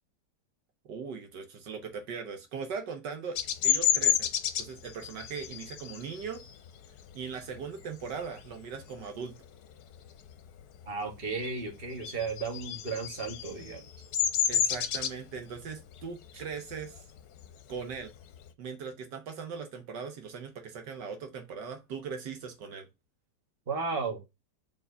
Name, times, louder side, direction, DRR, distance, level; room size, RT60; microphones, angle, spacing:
voice 1, 0.9-4.3 4.6-6.4 7.2-9.3 14.5-17.0 17.7-18.1 18.6-22.9, right 5 dB, 75° right, 1.7 m, -39 dB
Bird vocalization bird call bird song, 3.4-8.6 9.0-9.3 9.6-10.9 11.1-18.5, left 9 dB, 70° left, 1.1 m, -31 dB
voice 2, 10.9-13.8 16.3-16.4 23.7-24.2, right 4 dB, 35° right, 1.6 m, -34 dB
4.5 x 4.0 x 5.6 m
omnidirectional pair, 1.9 m